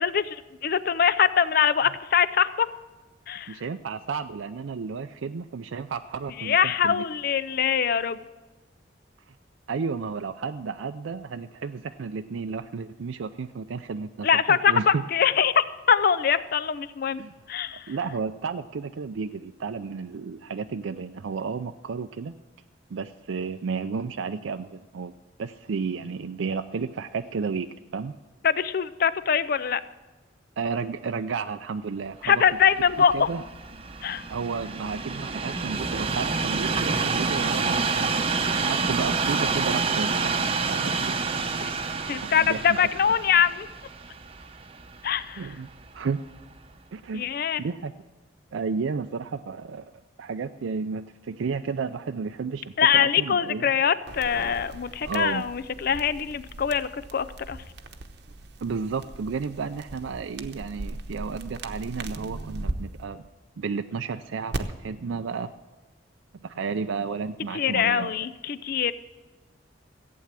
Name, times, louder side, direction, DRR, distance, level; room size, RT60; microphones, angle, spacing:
voice 1, 0.0-2.7 3.3-3.6 6.4-8.2 14.2-17.2 17.5-17.9 28.4-29.8 32.2-33.3 34.0-34.2 41.6-41.7 42.1-43.7 45.0-45.5 47.1-47.6 52.8-57.6 67.5-68.9, left 7 dB, 50° left, 15 dB, 0.4 m, -23 dB
voice 2, 3.5-7.0 9.7-15.0 17.2-17.3 17.7-22.3 22.9-25.1 25.4-28.1 30.6-32.4 33.1-33.4 34.3-38.3 38.6-41.5 42.2-42.8 45.4-46.2 46.9-47.3 47.6-47.9 48.5-49.9 50.2-53.6 55.0-55.4 58.6-63.2 63.6-65.5 66.4-68.1, right 5 dB, 90° right, 8 dB, 0.4 m, -32 dB
Train, 32.5-45.7 46.4-46.5, right 4 dB, 30° right, 0.7 m, -28 dB
sound 1, 54.1-62.7 64.5-64.6, right 2 dB, 60° right, 0.9 m, -38 dB
15.0 x 8.7 x 7.4 m, 1.2 s
head